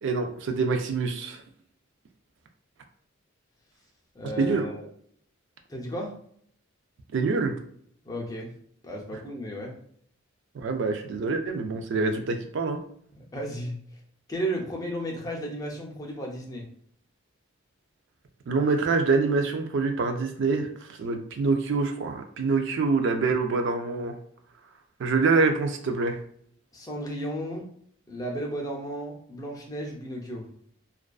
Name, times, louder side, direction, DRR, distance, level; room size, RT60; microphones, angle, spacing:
voice 1, 0.0-1.4 4.4-4.7 7.1-7.6 10.6-12.8 18.5-20.7 21.0-24.2 25.0-26.2, right 4 dB, 60° right, 5 dB, 0.3 m, -25 dB
voice 2, 4.1-4.9 5.7-6.1 8.0-8.5 8.8-9.7 13.1-13.8 14.3-16.7 26.7-27.7 28.1-30.4, right 1 dB, 15° left, -1 dB, 0.4 m, -34 dB
2.4 x 2.2 x 2.3 m, 0.64 s
head